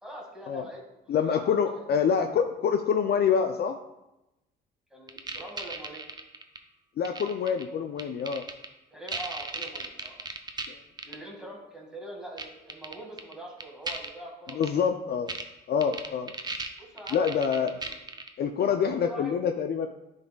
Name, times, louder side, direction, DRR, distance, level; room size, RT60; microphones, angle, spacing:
voice 1, 0.0-1.9 4.9-6.0 8.9-10.3 11.0-14.7 15.7-16.0 16.8-17.4 17.8-17.9 18.6-19.3, right 1 dB, 5° right, -2 dB, 1.9 m, -43 dB
voice 2, 1.1-3.8 7.0-8.4 10.7-10.8 14.5-15.3 15.7-16.3 17.1-17.7 18.4-19.9, left 7 dB, 55° left, 6 dB, 0.4 m, -26 dB
sound 1, 5.1-6.6 7.0-7.6 8.0-8.7 9.1-10.7 11.0-11.1 12.4-12.5 12.7-13.3 13.6-14.1 14.5-14.7 15.3-15.4 15.8-18.3, right 3 dB, 20° right, 0.6 m, -35 dB
10.5 x 3.9 x 2.3 m, 0.94 s
cardioid pair, 90°, 20 cm